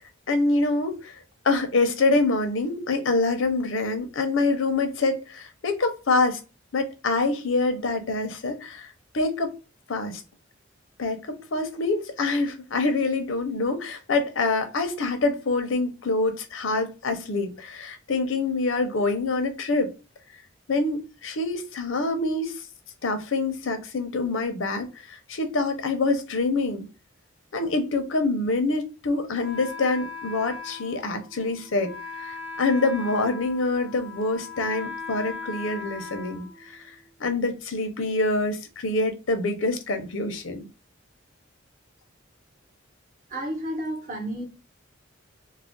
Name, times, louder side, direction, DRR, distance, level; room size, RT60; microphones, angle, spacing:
voice 1, 0.3-1.2 1.4-6.4 6.7-9.5 9.9-10.2 11.0-19.9 20.7-22.6 23.0-26.9 27.5-36.8 37.2-40.7, left 3 dB, 80° left, 0.6 m, -26 dB
Wind instrument woodwind instrument, 29.4-37.1, left 4 dB, 5° right, 0.5 m, -39 dB
voice 2, 43.3-44.4, right 1 dB, 45° right, 0.8 m, -31 dB
2.4 x 2.0 x 3.6 m
head